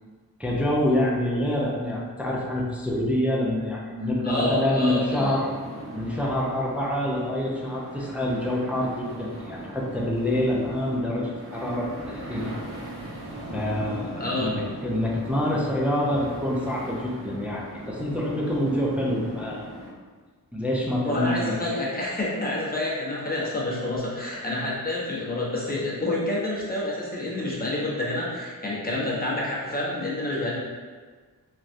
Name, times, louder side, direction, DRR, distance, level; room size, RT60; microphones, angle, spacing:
voice 1, 0.4-5.5 5.9-12.6 13.5-19.7 20.5-21.5, left 1 dB, 5° right, -4 dB, 0.4 m, -26 dB
voice 2, 4.2-5.3 14.1-14.5 21.0-30.6, left 1 dB, 25° left, -6 dB, 0.9 m, -28 dB
sound 1, 5.1-19.9, right 1 dB, 35° right, 0.9 m, -39 dB
3.3 x 2.3 x 2.5 m, 1.5 s
wide cardioid pair, 70°, 37 cm